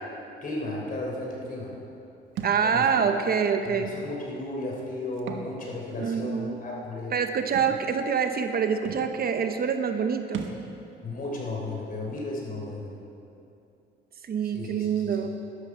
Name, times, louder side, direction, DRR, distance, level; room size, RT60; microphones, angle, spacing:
voice 1, 0.4-1.7 2.6-2.9 3.7-7.2 11.0-12.9 14.4-15.2, left 2 dB, 45° left, -2 dB, 3.7 m, -34 dB
voice 2, 2.4-3.9 6.0-6.6 7.1-10.5 14.2-15.3, right 6 dB, 50° right, 7 dB, 0.8 m, -26 dB
Thump thud, 2.4-2.6 3.6-3.8 5.1-5.5 5.9-6.0 7.5-7.8 8.5-8.6 8.8-9.1 10.3-10.6, right 6 dB, 75° right, 1.2 m, -36 dB
12.5 x 12.0 x 5.0 m, 2.7 s
cardioid pair, 90°, 20 cm